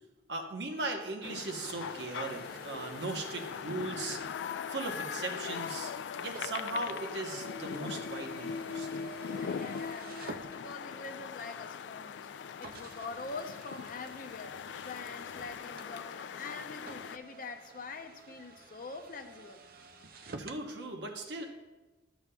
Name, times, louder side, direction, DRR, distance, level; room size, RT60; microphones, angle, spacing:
voice 1, 0.3-4.2 4.7-5.9 6.2-8.9 20.4-21.5, right 2 dB, 70° right, 3 dB, 0.9 m, -38 dB
sound 1, 1.2-17.2, left 7 dB, 80° left, 0.3 m, -40 dB
sound 2, 1.6-11.1 11.8-11.9 12.6-20.7, right 3 dB, 55° right, 0.5 m, -51 dB
voice 2, 9.2-14.6 14.8-19.6, left 4 dB, 50° left, 6 dB, 0.6 m, -44 dB
12.5 x 7.1 x 2.3 m, 1.2 s
head